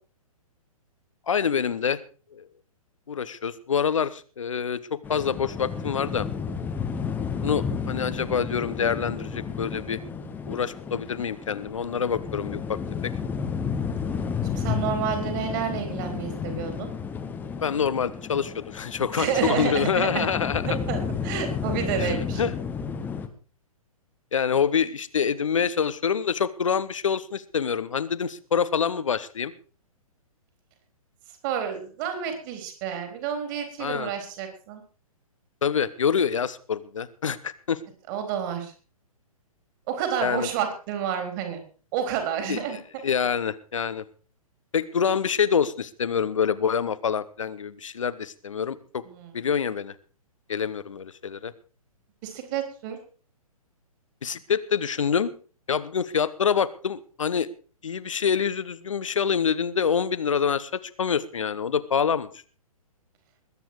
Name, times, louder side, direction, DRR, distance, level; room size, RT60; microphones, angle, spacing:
voice 1, 1.3-2.0 2.3-2.4 3.1-6.3 7.4-10.0 10.5-13.1 17.6-20.8 22.0-22.5 24.3-29.5 33.8-34.1 35.6-37.8 40.2-40.5 42.5-42.6 43.0-44.0 44.7-49.0 49.3-49.9 50.5-51.5 54.2-55.3 55.7-57.5 57.8-60.7 61.0-62.3, left 7 dB, 60° left, 16 dB, 1.2 m, -26 dB
sound 1, 5.0-23.3, left 6 dB, 10° left, 1.1 m, -32 dB
voice 2, 14.5-16.9 19.1-20.3 20.6-22.4 31.4-34.8 38.1-38.7 39.9-41.6 41.9-42.8 49.1-49.4 52.2-53.0, right 8 dB, 30° right, 6 dB, 4.0 m, -30 dB
21.0 x 9.3 x 4.8 m, 0.39 s
figure-of-eight pair, 120°, 19 cm